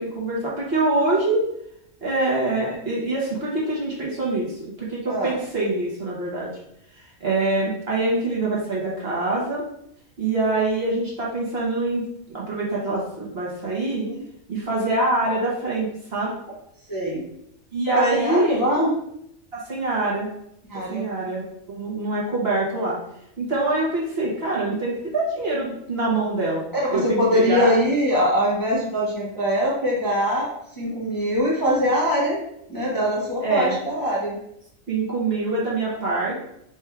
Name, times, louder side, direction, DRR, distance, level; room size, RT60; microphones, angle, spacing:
voice 1, 0.0-1.4 2.0-6.5 7.2-9.6 10.2-12.0 12.3-14.1 14.5-16.3 17.7-18.6 19.5-20.3 20.9-23.0 23.4-26.6 26.9-27.7 33.4-33.8 34.9-36.4, right 2 dB, 50° right, -5 dB, 1.3 m, -24 dB
voice 2, 16.9-17.2 17.9-18.9 20.7-21.0 26.7-30.5 30.8-32.4 32.7-34.3, equal, 15° left, -6 dB, 0.9 m, -22 dB
3.4 x 2.6 x 4.4 m, 0.75 s
omnidirectional pair, 1.4 m